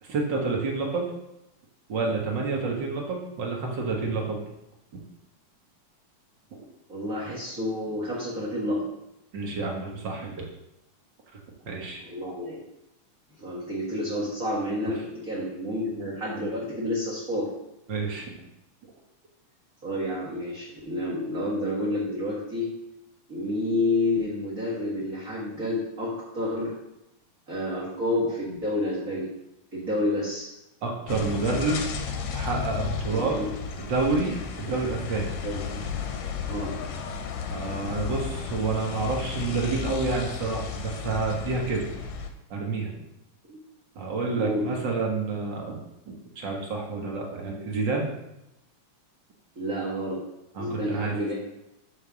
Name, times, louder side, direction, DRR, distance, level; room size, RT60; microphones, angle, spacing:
voice 1, 0.0-1.1 1.9-4.4 6.5-6.6 9.3-10.5 11.7-12.0 17.9-18.3 30.8-31.9 32.3-33.4 33.8-35.3 37.5-41.9 42.5-42.9 43.9-45.8 46.1-48.1 50.5-51.1, right 3 dB, 50° right, 0 dB, 1.4 m, -29 dB
voice 2, 6.9-8.9 12.0-12.6 13.4-17.5 19.8-22.7 23.3-26.7 27.5-29.3 29.7-30.5 33.1-33.4 35.4-35.8 36.5-36.7 43.5-43.6 44.3-44.7 49.5-50.2 50.6-51.3, left 1 dB, 35° right, -5 dB, 1.7 m, -29 dB
sound 1, 31.1-42.3, left 5 dB, 75° left, 1.9 m, -33 dB
6.8 x 4.1 x 6.2 m, 0.87 s
omnidirectional pair, 3.6 m